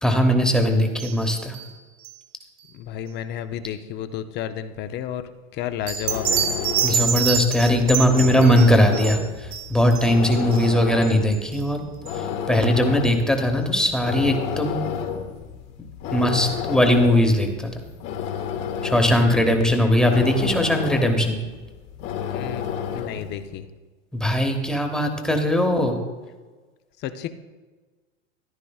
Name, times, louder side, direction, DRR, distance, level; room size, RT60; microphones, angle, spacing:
voice 1, 0.0-1.5 6.8-11.8 12.1-14.8 16.1-17.7 18.8-21.4 24.1-26.0, equal, ahead, 4 dB, 1.0 m, -20 dB
sound 1, 1.0-1.2 1.5-1.7 2.0-2.1 5.9-11.7 12.0-12.2 12.5-12.6 13.0-13.1, right 8 dB, 70° right, 2.8 m, -27 dB
voice 2, 2.7-5.2 5.5-6.6 19.2-19.9 22.3-22.6 22.9-23.7 27.0-27.3, left 10 dB, 25° left, 11 dB, 0.5 m, -32 dB
sound 2, 5.8-23.4, left 8 dB, 45° left, 1.1 m, -31 dB
14.0 x 10.5 x 2.3 m, 1.3 s
hypercardioid pair, 120°, 40 cm